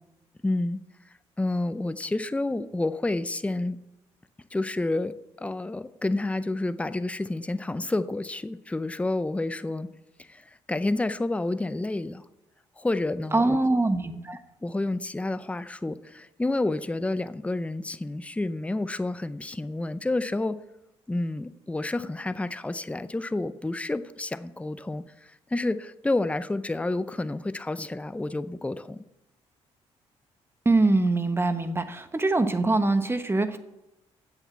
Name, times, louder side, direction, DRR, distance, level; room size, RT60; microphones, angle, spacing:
voice 1, 0.4-0.8 1.4-3.8 4.5-9.9 10.2-12.2 12.8-13.6 14.6-20.6 21.1-29.0, left 2 dB, 10° left, 13 dB, 0.6 m, -29 dB
voice 2, 13.3-14.4 30.6-33.6, right 2 dB, 20° right, 10 dB, 1.1 m, -23 dB
8.0 x 7.1 x 8.3 m, 0.94 s
supercardioid pair, 65°, 12 cm